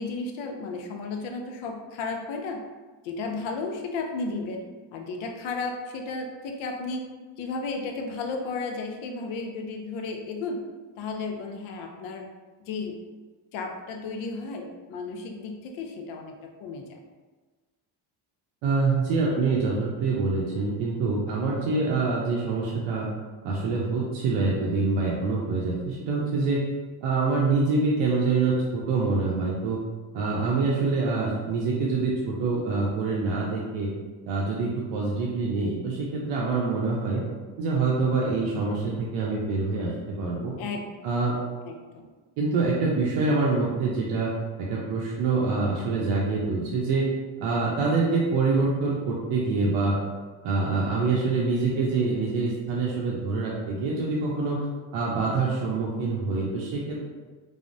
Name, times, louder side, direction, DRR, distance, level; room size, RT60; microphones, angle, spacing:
voice 1, 0.0-2.6 3.0-4.6 4.9-7.1 7.4-10.6 11.0-12.2 12.7-13.0 13.5-17.0 40.6-40.9 41.6-42.1, left 3 dB, 85° left, 3 dB, 0.6 m, -33 dB
voice 2, 18.6-23.1 23.4-26.7 27.0-29.8 30.1-33.9 34.3-37.2 37.6-40.5 41.0-41.4 42.4-44.3 44.6-47.1 47.4-50.0 50.4-54.7 54.9-57.0, right 3 dB, 80° right, -4 dB, 0.7 m, -25 dB
3.3 x 2.0 x 2.5 m, 1.3 s
cardioid pair, 125°, 46 cm